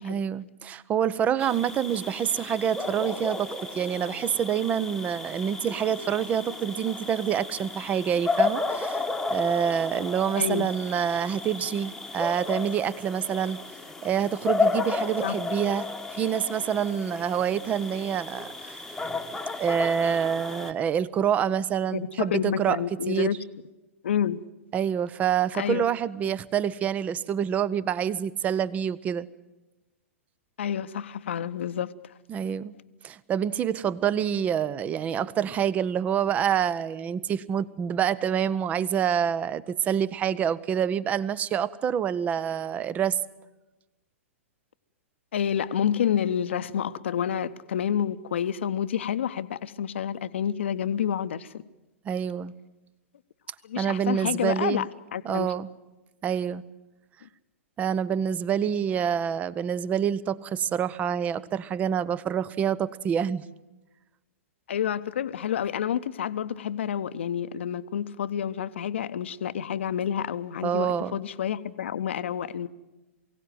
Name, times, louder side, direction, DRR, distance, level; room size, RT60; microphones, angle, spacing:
voice 1, 0.0-3.5 3.7-9.0 9.3-13.6 14.0-15.9 16.2-18.8 19.6-22.8 23.1-23.3 24.7-29.3 32.3-32.7 33.0-43.2 52.1-52.5 53.8-54.8 55.2-55.7 56.2-56.6 57.8-63.4 70.6-71.2, right 8 dB, 20° right, 20 dB, 0.7 m, -27 dB
sound 1, 1.4-20.7, left 3 dB, 5° left, 1.2 m, -33 dB
voice 2, 10.4-10.7 15.2-15.4 21.9-23.4 24.0-24.4 25.5-25.8 30.6-31.9 45.3-51.5 53.6-54.9 55.1-55.5 57.2-57.3 64.7-72.7, left 9 dB, 55° left, 13 dB, 0.8 m, -29 dB
23.0 x 17.0 x 9.3 m, 1.1 s
figure-of-eight pair, 105°, 7 cm